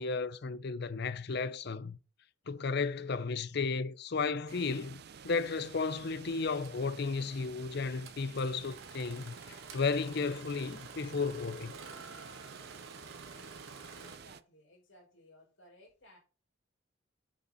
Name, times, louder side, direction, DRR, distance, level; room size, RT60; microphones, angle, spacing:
voice 1, 0.0-2.0 2.5-11.7, left 4 dB, 55° left, 0.6 m, -34 dB
sound 1, 4.5-14.4, right 6 dB, 55° right, 0.5 m, -51 dB
Engine starting, 6.6-6.8 8.0-14.2, right 4 dB, 90° right, 1.9 m, -50 dB
voice 2, 11.0-12.0 14.0-16.2, left 1 dB, 70° left, 4.8 m, -61 dB
8.7 x 5.6 x 4.1 m
head